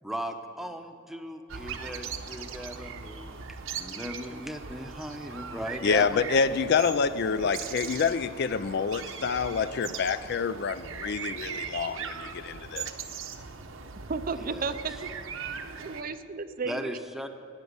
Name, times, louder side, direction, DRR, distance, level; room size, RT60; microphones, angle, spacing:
voice 1, 0.0-6.2 14.4-14.8 16.6-17.3, equal, ahead, 6 dB, 0.8 m, -38 dB
sound 1, 1.5-16.0, right 6 dB, 65° right, 0.9 m, -39 dB
voice 2, 5.8-12.9, left 5 dB, 50° left, 14 dB, 0.4 m, -27 dB
voice 3, 14.1-15.1 15.5-16.9, right 4 dB, 40° right, 11 dB, 0.5 m, -34 dB
13.5 x 9.3 x 9.5 m, 2.6 s
head